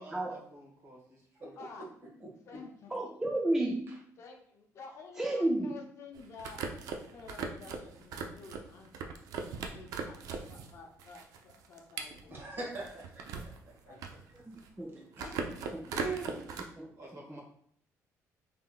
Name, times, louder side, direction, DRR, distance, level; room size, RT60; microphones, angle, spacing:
voice 1, 0.0-1.6 17.0-17.4, right 1 dB, 60° right, -3 dB, 1.4 m, -52 dB
voice 2, 1.6-1.9 2.4-3.0 4.2-6.6 7.1-9.1 9.7-12.5 13.8-14.2, left 4 dB, 50° left, 2 dB, 0.6 m, -51 dB
voice 3, 2.9-4.0 5.2-5.8 14.4-15.1 15.7-16.0 16.3-16.9 17.3-17.4, right 1 dB, 10° right, -1 dB, 0.3 m, -33 dB
sound 1, 6.1-10.7 11.0-13.6 13.9-14.8 15.1-16.6, right 5 dB, 75° right, 0.4 m, -39 dB
voice 4, 12.3-14.0 15.2-15.4 15.9-16.4, right 3 dB, 40° right, -1 dB, 1.1 m, -42 dB
3.6 x 3.4 x 2.2 m, 0.63 s
cardioid pair, 150°, 6 cm